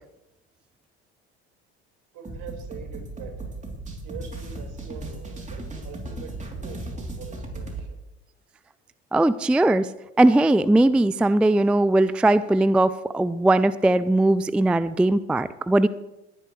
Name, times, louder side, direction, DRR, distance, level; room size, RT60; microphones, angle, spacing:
voice 1, 2.1-3.5 4.0-8.0, right 6 dB, 65° right, 0 dB, 4.8 m, -43 dB
sound 1, 2.2-7.9, right 2 dB, 20° right, 3.3 m, -36 dB
voice 2, 9.1-9.9 10.2-15.9, right 2 dB, 5° right, 15 dB, 0.3 m, -19 dB
20.0 x 10.5 x 3.2 m, 0.95 s
hypercardioid pair, 75°, 33 cm